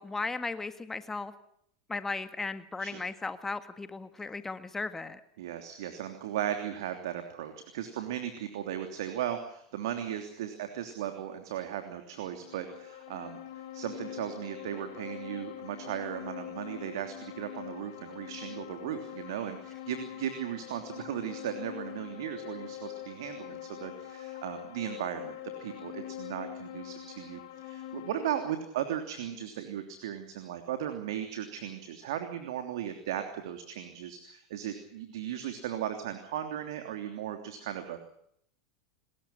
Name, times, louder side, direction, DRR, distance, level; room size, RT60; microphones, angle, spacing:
voice 1, 0.0-1.3 1.9-5.2, left 3 dB, 15° left, 11 dB, 1.7 m, -36 dB
voice 2, 5.4-38.0, right 10 dB, 65° right, 6 dB, 3.1 m, -37 dB
sound 1, 12.2-28.5, left 12 dB, 60° left, 5.0 m, -44 dB
29.0 x 21.0 x 5.8 m, 0.72 s
figure-of-eight pair, 85°, 3 cm